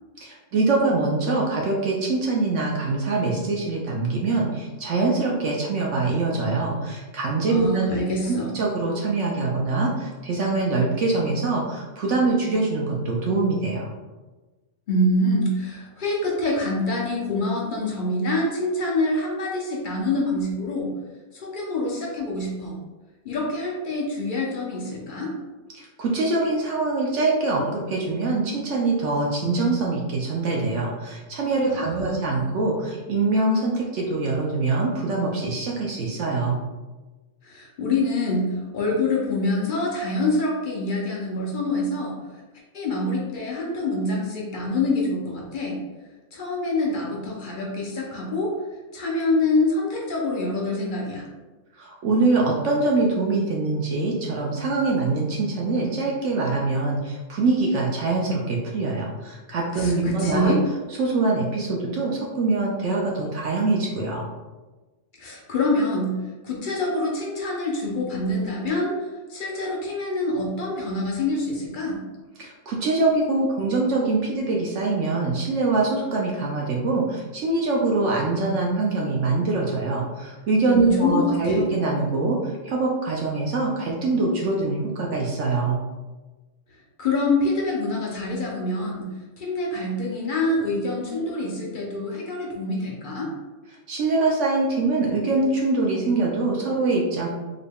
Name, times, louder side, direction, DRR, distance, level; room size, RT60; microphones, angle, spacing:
voice 1, 0.2-8.0 8.3-13.9 25.7-36.6 51.8-60.5 61.0-64.3 72.4-85.8 93.9-97.3, right 3 dB, 65° right, -2 dB, 0.8 m, -24 dB
voice 2, 7.5-8.5 14.9-20.9 21.3-22.8 23.2-25.3 31.6-32.4 37.4-42.2 42.7-45.8 46.3-48.5 48.9-51.2 59.7-60.6 65.2-66.1 66.4-72.0 80.7-81.6 87.0-93.3, left 2 dB, 50° left, -3 dB, 0.6 m, -26 dB
3.8 x 2.2 x 3.4 m, 1.2 s
omnidirectional pair, 1.6 m